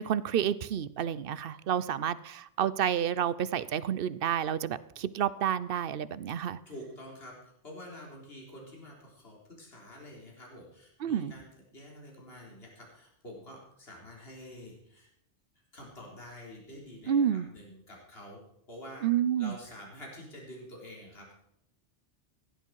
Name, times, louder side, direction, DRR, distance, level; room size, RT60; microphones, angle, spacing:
voice 1, 0.0-6.6 11.0-11.3 17.1-17.5 19.0-19.6, right 9 dB, 60° right, 0.8 m, -29 dB
voice 2, 6.7-11.5 11.7-15.1 15.7-18.4 18.7-19.1 19.4-21.3, left 1 dB, 55° left, 4.0 m, -48 dB
16.5 x 11.0 x 4.7 m
omnidirectional pair, 1.2 m